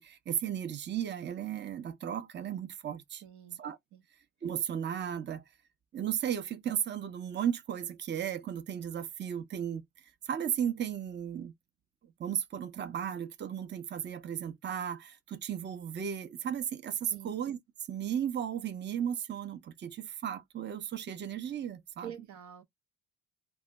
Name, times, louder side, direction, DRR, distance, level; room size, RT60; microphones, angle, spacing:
voice 1, 0.0-3.2 3.6-3.8 4.4-5.4 5.9-9.8 10.2-11.5 12.2-17.6 17.9-22.1, right 9 dB, 35° right, 0.6 m, -35 dB
voice 2, 3.2-3.6 3.9-4.0 17.1-17.3 22.0-22.6, right 9 dB, 75° right, 0.7 m, -46 dB
2.4 x 2.2 x 3.3 m
cardioid pair, 90°, 30 cm